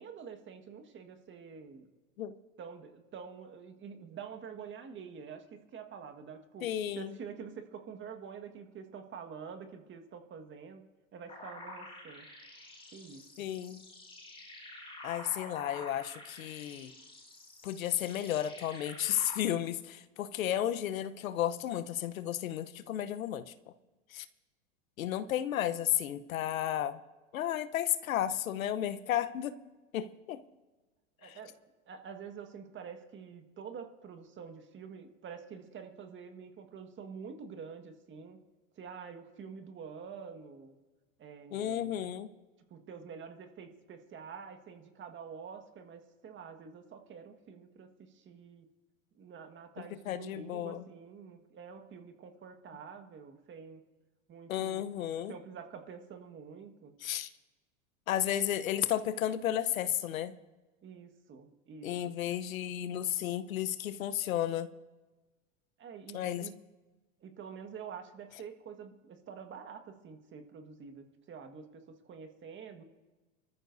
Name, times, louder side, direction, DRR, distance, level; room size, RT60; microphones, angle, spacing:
voice 1, 0.0-1.9 2.6-6.7 7.0-10.9 11.1-12.3 12.9-13.2 31.2-31.5 31.9-38.4 38.8-40.8 41.2-41.9 42.7-48.7 49.2-53.8 54.3-54.9 55.3-56.9 60.8-61.9 65.8-66.5 67.2-72.8, right 6 dB, 30° right, 6 dB, 1.6 m, -47 dB
voice 2, 6.6-7.2 13.4-13.8 15.0-16.9 17.6-23.5 24.1-24.3 25.0-27.0 27.3-29.6 29.9-30.4 31.2-31.4 41.5-42.3 50.1-50.8 54.5-55.3 57.0-57.3 58.1-60.3 61.8-64.7 66.1-66.5, left 11 dB, 90° left, 12 dB, 0.9 m, -33 dB
sound 1, 11.3-19.4, left 2 dB, 15° left, 4.7 m, -49 dB
24.0 x 14.0 x 2.7 m, 1.2 s
hypercardioid pair, 120°, 40 cm